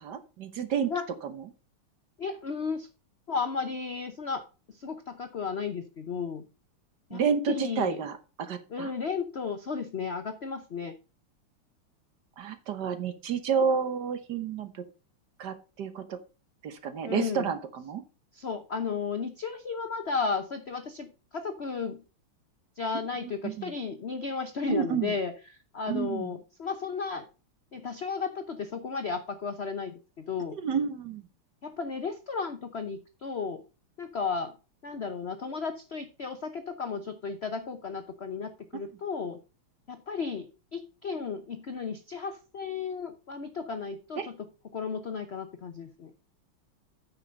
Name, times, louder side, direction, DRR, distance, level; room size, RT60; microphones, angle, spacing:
voice 1, 0.0-0.9 1.2-1.4 7.1-8.9 12.4-14.7 15.4-16.2 16.6-18.0 23.2-23.7 24.7-25.2 25.9-26.3 30.6-31.2 44.2-44.3, right 6 dB, 55° right, 11 dB, 1.4 m, -30 dB
voice 2, 2.2-2.9 3.3-6.4 7.1-8.0 8.7-10.9 17.0-17.4 18.3-22.0 22.8-27.3 27.7-30.6 31.6-33.6 34.0-34.5 34.8-39.4 39.9-44.5 44.7-46.1, left 5 dB, 80° left, 9 dB, 0.5 m, -34 dB
9.3 x 6.0 x 5.3 m, 0.31 s
omnidirectional pair, 2.4 m